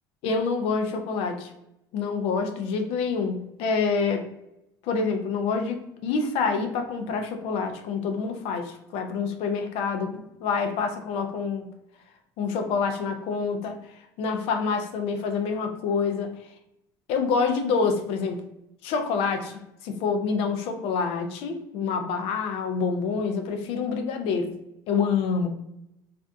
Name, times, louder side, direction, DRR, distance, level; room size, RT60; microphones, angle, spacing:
voice 1, 0.2-1.5 1.9-4.3 4.8-11.7 12.4-13.8 14.2-16.3 17.1-18.4 18.8-24.6 24.9-25.5, left 5 dB, 65° left, 5 dB, 0.5 m, -27 dB
2.5 x 2.2 x 2.5 m, 0.84 s
supercardioid pair, 80°, 11 cm